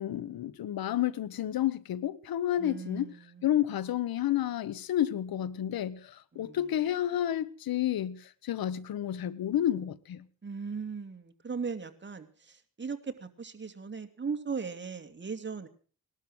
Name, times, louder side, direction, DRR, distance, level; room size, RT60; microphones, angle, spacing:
voice 1, 0.0-3.1 3.4-10.3, left 11 dB, 75° left, 1.1 m, -30 dB
voice 2, 2.6-3.5 6.3-6.7 10.4-15.7, right 5 dB, 30° right, 2.4 m, -38 dB
19.0 x 12.0 x 6.2 m
cardioid pair, 75°, 36 cm